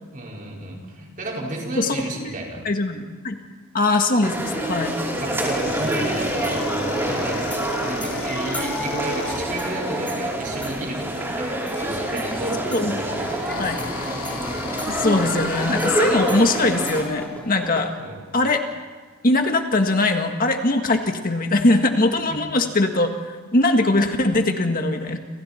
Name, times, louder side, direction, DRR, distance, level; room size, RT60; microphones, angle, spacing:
voice 1, 0.1-2.6 5.2-6.8 7.0-7.5 7.8-13.9 18.0-18.2 22.3-22.4, right 1 dB, 35° right, -2 dB, 5.2 m, -32 dB
voice 2, 2.6-3.4 3.7-5.0 12.7-12.9 13.6-13.8 14.9-17.9 18.3-18.6 19.2-25.2, left 2 dB, 40° left, 5 dB, 1.6 m, -21 dB
sound 1, 4.2-17.0, right 1 dB, 10° right, 4.7 m, -27 dB
sound 2, 4.5-17.8, left 1 dB, 5° left, 3.2 m, -37 dB
sound 3, 5.5-11.1 12.1-15.9, left 5 dB, 70° left, 1.3 m, -36 dB
29.5 x 28.0 x 4.3 m, 1.5 s
head